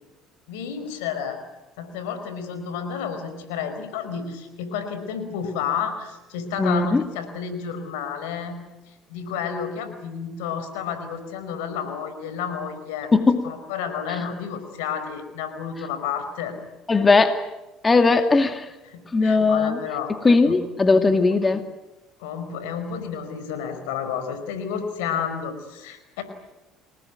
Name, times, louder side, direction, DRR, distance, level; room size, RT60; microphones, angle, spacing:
voice 1, 0.5-1.4 1.8-8.5 8.9-13.1 13.4-16.6 18.9-20.1 20.4-20.6 21.0-21.2 22.2-26.2, left 7 dB, 85° left, 9 dB, 5.0 m, -31 dB
voice 2, 6.6-7.0 13.1-13.5 14.1-14.2 16.9-17.5 17.8-18.7 19.1-19.8 20.1-21.6, left 3 dB, 25° left, 7 dB, 2.4 m, -19 dB
29.5 x 19.5 x 9.4 m, 1.0 s
supercardioid pair, 80°, 0 cm